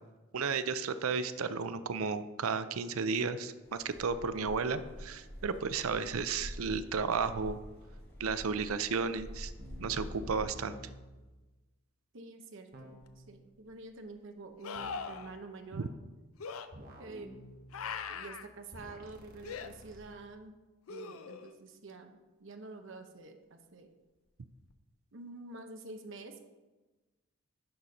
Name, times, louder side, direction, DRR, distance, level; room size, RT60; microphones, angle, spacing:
voice 1, 0.3-7.6 8.2-9.5 9.8-10.8 15.7-15.9, right 5 dB, 85° right, 12 dB, 0.5 m, -33 dB
sound 1, 3.6-10.4, equal, 50° left, 1.9 m, -47 dB
voice 2, 5.8-6.1 12.1-15.9 17.0-17.4 18.1-20.6 20.9-23.9 25.1-26.4, right 3 dB, 60° right, 6 dB, 0.9 m, -48 dB
sound 2, 9.6-11.1 12.7-13.3 14.7-15.1 16.7-18.2 18.7-20.0, equal, 45° right, 1.2 m, -51 dB
sound 3, 13.0-13.1 14.6-15.3 16.4-16.7 17.7-18.5 19.4-19.7 20.9-21.6 24.7-24.8, left 6 dB, 85° left, 0.5 m, -40 dB
11.0 x 4.3 x 5.2 m, 1.2 s
head